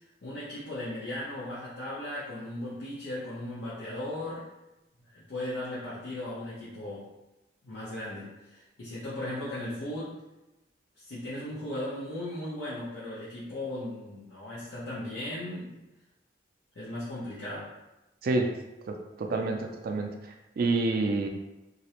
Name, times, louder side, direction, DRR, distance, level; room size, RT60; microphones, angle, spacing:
voice 1, 0.2-4.5 5.1-7.1 7.6-10.1 11.0-15.7 16.7-17.7, left 1 dB, 85° left, -10 dB, 0.6 m, -37 dB
voice 2, 18.9-20.1 20.6-21.3, right 3 dB, 55° right, 4 dB, 0.3 m, -28 dB
2.4 x 2.0 x 2.8 m, 0.98 s
head